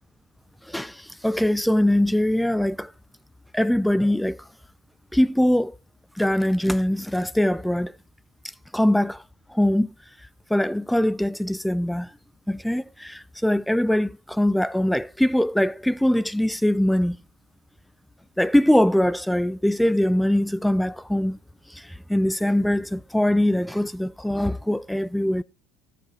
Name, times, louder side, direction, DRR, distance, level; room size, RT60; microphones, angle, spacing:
voice 1, 0.7-2.9 3.5-4.4 5.1-5.7 6.2-7.9 8.7-9.2 9.5-9.9 10.5-12.1 12.5-17.2 18.4-21.4 21.7-21.8 22.1-25.4, left 1 dB, 5° left, 0.4 m, -22 dB
17.0 x 6.7 x 3.2 m
figure-of-eight pair, 65°, 0 cm